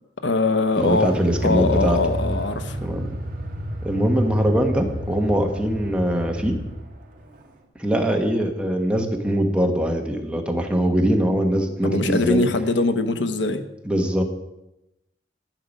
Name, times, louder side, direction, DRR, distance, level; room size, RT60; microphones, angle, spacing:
voice 1, 0.2-1.1 1.4-2.8 11.8-13.6, left 3 dB, 80° left, 9 dB, 0.9 m, -22 dB
voice 2, 0.8-2.0 2.8-3.2 3.8-6.5 7.8-12.4 13.8-14.2, equal, 5° right, 2 dB, 1.3 m, -22 dB
Car, 0.8-6.9 7.2-7.3, right 1 dB, 45° right, 1.8 m, -29 dB
11.0 x 10.0 x 5.4 m, 0.91 s
head